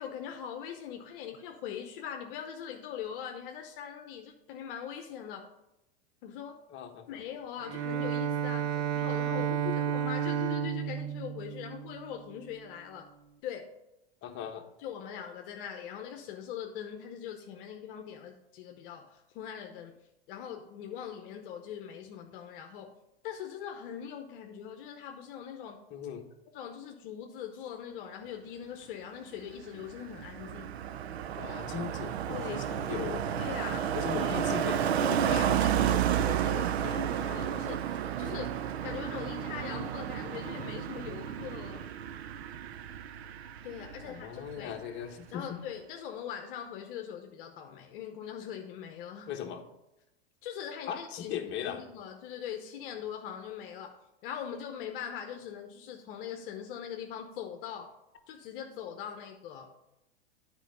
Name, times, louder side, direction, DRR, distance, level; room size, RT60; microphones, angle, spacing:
voice 1, 0.0-5.5 6.2-6.6 7.1-13.1 13.4-13.7 14.8-20.0 20.3-22.9 23.2-25.8 26.5-30.7 32.3-32.6 33.3-34.4 35.0-41.9 43.6-44.7 45.3-49.3 50.4-57.9 58.3-59.7, left 9 dB, 60° left, 4 dB, 0.9 m, -41 dB
voice 2, 6.7-7.2 9.3-9.7 14.2-14.7 25.9-26.3 31.4-33.3 33.9-34.8 44.0-45.6 49.3-49.6 50.9-51.8, left 9 dB, 35° left, 3 dB, 1.2 m, -38 dB
Bowed string instrument, 7.6-12.5, right 9 dB, 45° right, 0.6 m, -32 dB
Car passing by, 29.4-44.2 44.5-44.8, right 9 dB, 80° right, 0.6 m, -32 dB
9.1 x 4.7 x 5.4 m, 0.90 s
hypercardioid pair, 110°, 31 cm